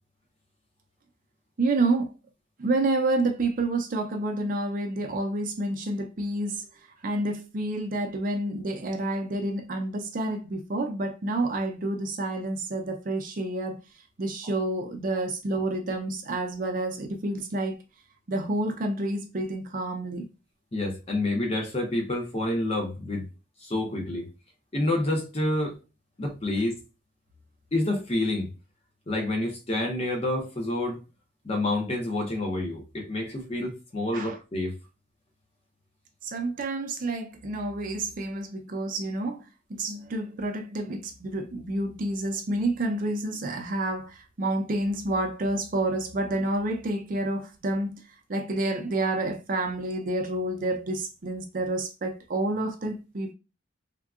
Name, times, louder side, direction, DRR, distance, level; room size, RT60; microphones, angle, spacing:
voice 1, 1.6-2.1 2.6-6.6 7.0-13.8 14.2-17.8 18.3-20.2 34.1-34.4 36.2-53.3, right 2 dB, 45° right, 0.5 m, -29 dB
voice 2, 20.7-23.3 23.6-24.3 24.7-25.8 26.2-26.8 27.7-28.5 29.1-31.0 31.4-34.8, left 1 dB, 30° left, 0.7 m, -28 dB
3.5 x 2.2 x 2.4 m
head